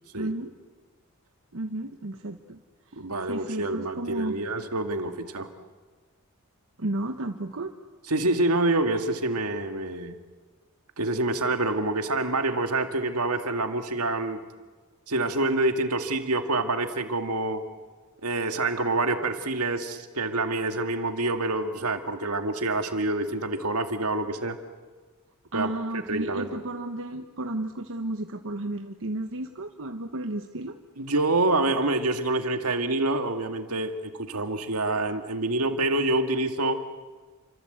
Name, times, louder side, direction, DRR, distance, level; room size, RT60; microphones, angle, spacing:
voice 1, 0.2-0.5 1.5-2.6 3.3-4.4 6.8-7.7 25.5-30.8, right 1 dB, 65° right, 6 dB, 1.2 m, -33 dB
voice 2, 3.0-5.5 8.1-10.2 11.0-14.4 15.1-17.6 18.2-24.6 25.5-25.7 26.1-26.6 31.0-36.8, right 2 dB, 80° right, 7 dB, 2.1 m, -27 dB
29.5 x 25.0 x 8.1 m, 1.4 s
head